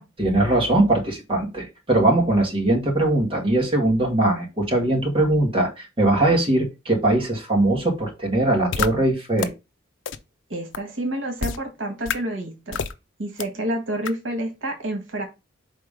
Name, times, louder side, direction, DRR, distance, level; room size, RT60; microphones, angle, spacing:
voice 1, 0.2-9.5, right 2 dB, 30° right, 0 dB, 1.9 m, -21 dB
sound 1, 8.7-8.9 9.4-9.5 10.1-10.2 10.7-10.8 11.4-11.6 12.1-12.2 12.7-12.9 13.4-13.5 14.1-14.2, left 6 dB, 75° left, 0.6 m, -25 dB
voice 2, 10.5-12.8 13.2-15.2, right 1 dB, 80° right, 3 dB, 1.6 m, -29 dB
5.1 x 3.8 x 5.1 m, 0.25 s
head